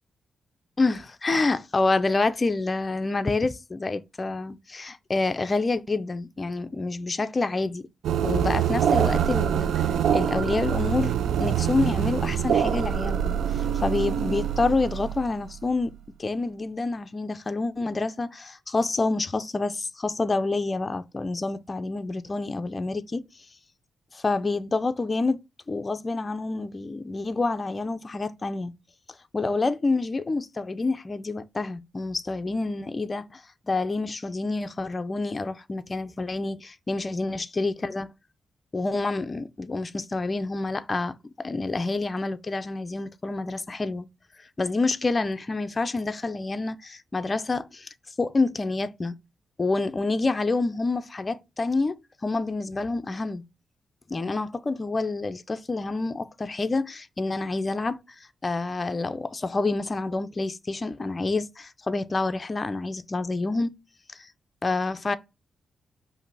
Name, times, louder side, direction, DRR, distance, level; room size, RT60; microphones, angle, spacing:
voice 1, 0.8-7.8 8.2-9.9 10.1-11.1 11.4-15.9 16.2-23.2 24.1-25.4 25.7-28.7 29.3-38.1 38.7-44.1 44.6-47.9 48.2-49.1 49.6-53.4 54.1-58.0 58.4-63.7 64.2-64.3 64.6-65.2, left 3 dB, 25° left, 0.4 m, -28 dB
sound 1, 8.0-16.0, right 9 dB, 85° right, 0.3 m, -25 dB
5.1 x 2.6 x 4.0 m
wide cardioid pair, 125°, 0 cm